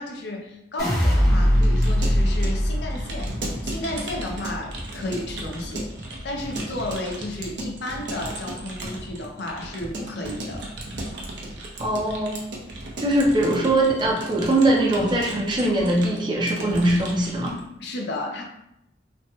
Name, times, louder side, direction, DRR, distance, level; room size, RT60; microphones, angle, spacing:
voice 1, 0.0-3.3 3.6-10.7 17.8-18.4, left 1 dB, 65° left, 1 dB, 0.6 m, -33 dB
sound 1, 0.8-7.0 7.3-7.9, equal, 20° left, 0.7 m, -23 dB
Keyboard (musical) / Computer keyboard, 1.5-17.6, right 1 dB, 70° right, 0.6 m, -36 dB
voice 2, 11.8-12.4 13.0-17.6, right 1 dB, 25° right, -2 dB, 0.5 m, -21 dB
3.1 x 2.1 x 2.8 m, 0.82 s
head